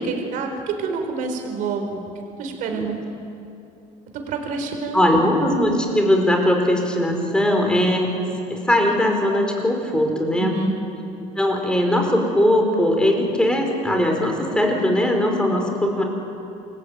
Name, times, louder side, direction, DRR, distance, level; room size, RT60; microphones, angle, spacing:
voice 1, 0.0-2.0 2.4-3.0 4.1-5.3 10.4-10.7, right 4 dB, 60° right, 4 dB, 4.7 m, -28 dB
voice 2, 2.7-3.0 4.9-8.1 8.5-10.6 11.4-16.0, left 1 dB, 5° left, 2 dB, 4.7 m, -20 dB
28.0 x 22.5 x 9.2 m, 2.7 s
cardioid pair, 155°, 15 cm